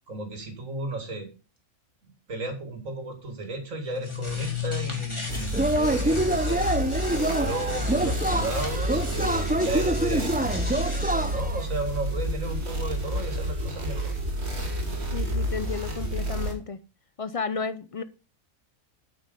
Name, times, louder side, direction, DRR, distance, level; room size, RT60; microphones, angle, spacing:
voice 1, 0.1-1.3 2.3-6.7 7.1-14.2, right 2 dB, 70° right, 5 dB, 2.7 m, -34 dB
sound 1, 3.8-11.3, left 5 dB, 20° left, 2.6 m, -36 dB
sound 2, 5.3-16.5, equal, 50° right, 2.7 m, -30 dB
Yell / Cheering, 5.5-11.6, right 1 dB, 10° right, 0.6 m, -26 dB
voice 2, 15.1-16.8 17.2-18.0, left 5 dB, 55° left, 14 dB, 0.3 m, -32 dB
9.0 x 7.9 x 5.4 m, 0.32 s
omnidirectional pair, 1.4 m